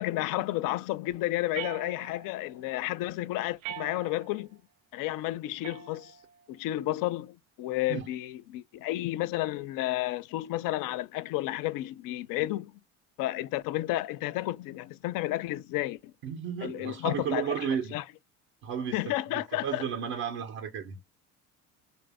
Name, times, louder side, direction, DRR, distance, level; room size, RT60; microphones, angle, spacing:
voice 1, 0.0-4.6 4.9-6.1 6.5-12.7 13.2-16.1 16.6-18.0 18.9-19.8, left 16 dB, 60° left, 0.5 m, -32 dB
sound 1, 1.5-2.4 3.6-4.4 5.6-6.4, right 10 dB, 85° right, 0.6 m, -42 dB
voice 2, 16.2-18.0 18.6-21.0, right 8 dB, 60° right, 0.9 m, -33 dB
3.3 x 2.6 x 3.4 m
hypercardioid pair, 65°, 39 cm